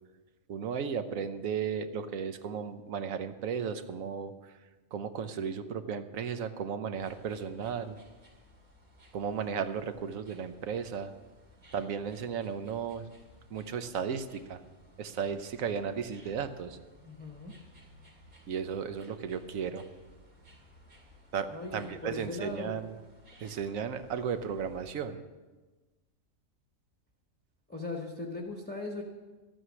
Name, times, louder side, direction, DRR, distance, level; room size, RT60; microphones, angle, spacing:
voice 1, 0.5-4.5 4.9-8.0 9.1-11.1 11.7-13.1 13.5-14.6 15.0-16.8 18.5-19.8 21.3-23.0 23.4-25.2, right 7 dB, 70° right, 10 dB, 1.2 m, -35 dB
sound 1, 6.9-24.9, left 1 dB, 85° right, 3.1 m, -58 dB
voice 2, 17.0-17.5 21.5-22.7 27.7-29.0, left 3 dB, 10° left, 1 dB, 0.9 m, -39 dB
13.0 x 9.1 x 6.2 m, 1.3 s
omnidirectional pair, 1.5 m